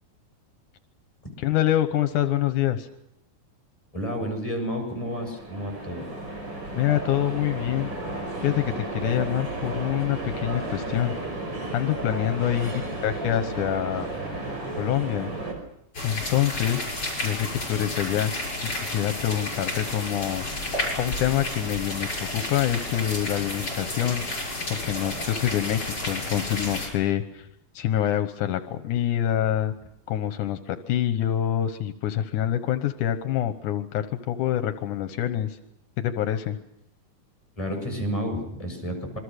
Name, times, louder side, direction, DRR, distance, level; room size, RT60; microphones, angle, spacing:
voice 1, 1.4-2.9 6.8-7.9 8.4-11.1 11.7-14.1 14.8-15.3 16.0-16.9 17.2-18.3 18.7-20.5 21.0-27.5 27.7-29.7 30.1-35.6 36.0-36.6, left 11 dB, 80° left, 9 dB, 2.5 m, -26 dB
voice 2, 3.9-6.1 37.6-39.2, equal, 10° left, 2 dB, 7.4 m, -30 dB
sound 1, 4.7-15.5, right 2 dB, 35° right, 6.0 m, -33 dB
sound 2, 15.9-26.9, left 2 dB, 35° left, 7.8 m, -31 dB
27.5 x 23.0 x 6.6 m, 0.79 s
omnidirectional pair, 3.6 m